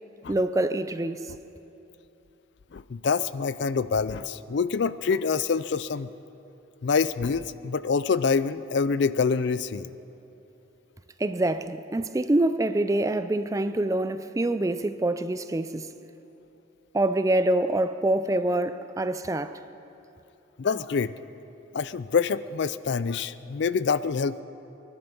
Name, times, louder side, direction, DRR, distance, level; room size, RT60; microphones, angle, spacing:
voice 1, 0.3-1.3 11.2-15.9 16.9-19.6, right 1 dB, 15° right, 0.4 m, -25 dB
voice 2, 2.7-6.1 6.8-9.9 20.6-21.1 21.7-24.4, left 5 dB, 60° left, 0.4 m, -26 dB
23.5 x 11.0 x 5.4 m
head